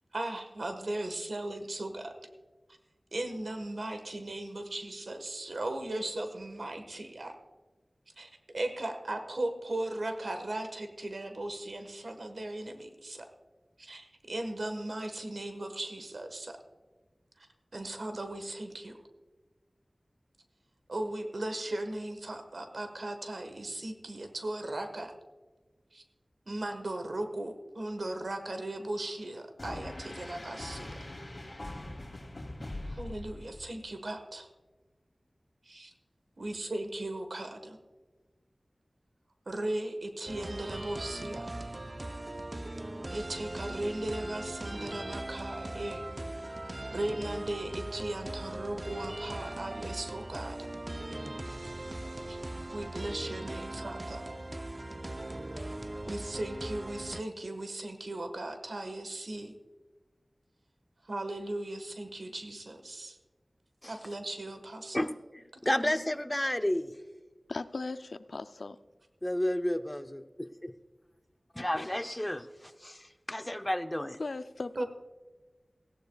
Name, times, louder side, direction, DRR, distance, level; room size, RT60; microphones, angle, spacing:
voice 1, 0.1-2.1 3.1-7.3 8.2-13.3 13.8-16.6 17.7-19.0 20.9-25.1 25.9-26.0 26.5-31.0 32.8-34.5 35.6-35.9 36.4-37.8 39.5-41.5 43.1-46.0 46.9-50.7 52.3-52.4 52.7-54.2 56.1-59.5 61.0-63.2 63.9-65.1 65.8-66.0 74.7-74.9, right 1 dB, 80° right, 7 dB, 1.4 m, -37 dB
sound 1, 29.6-33.9, left 1 dB, 50° left, 2.7 m, -42 dB
sound 2, 40.3-57.2, right 1 dB, 40° right, 0.5 m, -39 dB
voice 2, 64.9-66.9 69.2-70.2 70.6-70.7 71.5-74.2, left 1 dB, 20° left, 10 dB, 0.6 m, -32 dB
voice 3, 67.5-68.8 74.2-74.8, left 3 dB, 85° left, 12 dB, 0.4 m, -38 dB
18.0 x 15.5 x 2.3 m, 1.2 s
wide cardioid pair, 45°, 0 cm